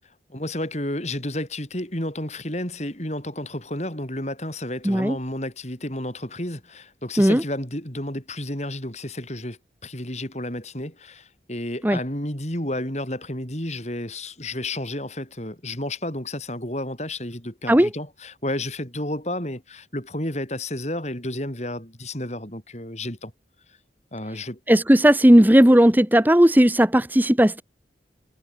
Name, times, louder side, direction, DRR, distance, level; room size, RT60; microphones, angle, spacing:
voice 1, 0.3-23.3 23.7-23.8 24.1-24.6, left 1 dB, 40° left, 6.9 m, -31 dB
voice 2, 4.8-5.2 7.2-7.4 11.8-12.0 17.7-17.9 24.7-27.6, equal, 10° right, 1.0 m, -16 dB
head